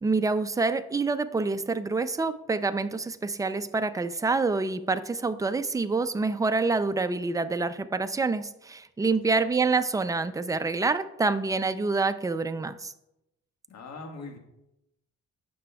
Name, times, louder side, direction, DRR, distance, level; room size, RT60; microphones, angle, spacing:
voice 1, 0.0-12.9, right 3 dB, 10° right, 10 dB, 0.4 m, -27 dB
voice 2, 13.7-14.4, left 3 dB, 60° left, 2 dB, 1.7 m, -42 dB
16.0 x 6.0 x 2.3 m, 0.87 s
cardioid pair, 90°, 30 cm